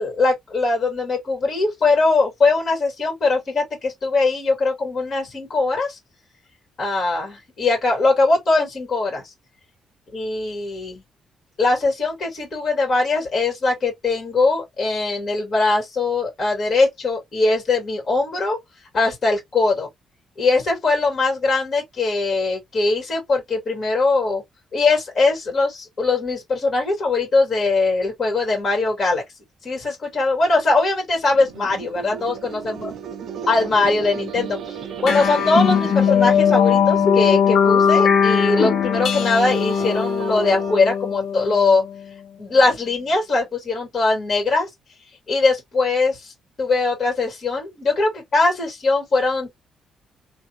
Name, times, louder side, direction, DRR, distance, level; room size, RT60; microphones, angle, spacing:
voice 1, 0.0-6.0 6.8-9.3 10.1-11.0 11.6-18.6 18.9-19.9 20.4-24.4 24.7-29.2 29.6-32.9 33.5-41.8 42.4-44.7 45.3-46.3 46.6-49.6, left 3 dB, 40° left, 2.4 m, -21 dB
sound 1, 31.2-40.8, right 7 dB, 60° right, 0.5 m, -34 dB
sound 2, 35.0-41.9, left 7 dB, 55° left, 0.6 m, -19 dB
3.4 x 2.6 x 2.9 m
cardioid pair, 155°, 0 cm